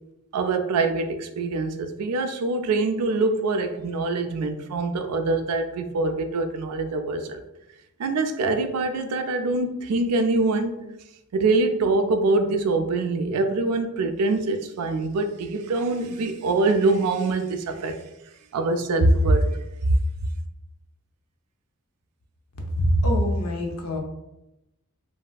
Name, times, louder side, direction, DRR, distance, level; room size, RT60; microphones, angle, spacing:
voice 1, 0.3-7.4 8.0-10.8 11.3-18.0 18.5-19.6, right 3 dB, 85° right, 0.4 m, -24 dB
voice 2, 22.8-24.0, equal, 85° left, 0.6 m, -23 dB
3.2 x 2.6 x 2.3 m
head